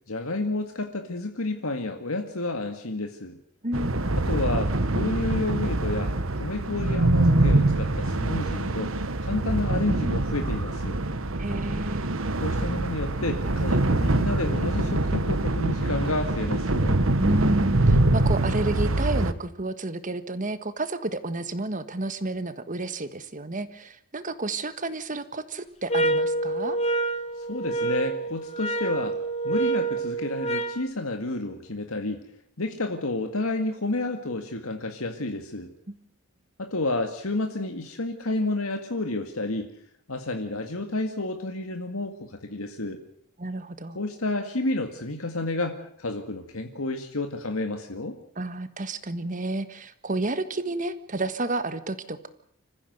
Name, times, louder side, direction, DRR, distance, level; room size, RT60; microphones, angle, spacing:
voice 1, 0.1-3.4 4.2-8.9 9.2-11.0 12.4-17.0 27.4-29.2 29.4-32.2 32.6-35.7 36.6-39.7 40.1-43.0 43.9-48.1, left 2 dB, 85° left, 5 dB, 2.0 m, -30 dB
voice 2, 3.6-4.1 11.4-12.1 17.2-26.8 35.9-36.0 43.4-44.0 48.3-52.3, right 2 dB, 40° right, 11 dB, 1.5 m, -30 dB
sound 1, 3.7-19.3, right 2 dB, 70° right, 1.4 m, -24 dB
sound 2, 25.9-30.8, right 2 dB, 30° left, 1.5 m, -27 dB
26.5 x 15.0 x 8.1 m, 0.69 s
head